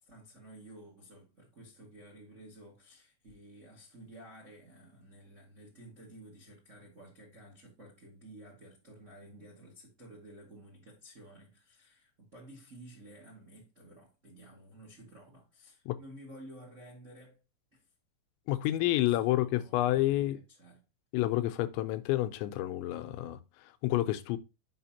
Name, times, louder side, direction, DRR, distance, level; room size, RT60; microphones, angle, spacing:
voice 1, 0.0-17.4 17.7-17.8 19.0-20.8, right 1 dB, 55° right, 0.7 m, -53 dB
voice 2, 18.5-20.4 21.1-24.4, left 15 dB, 85° left, 2.8 m, -29 dB
7.6 x 5.8 x 2.8 m
omnidirectional pair, 5.3 m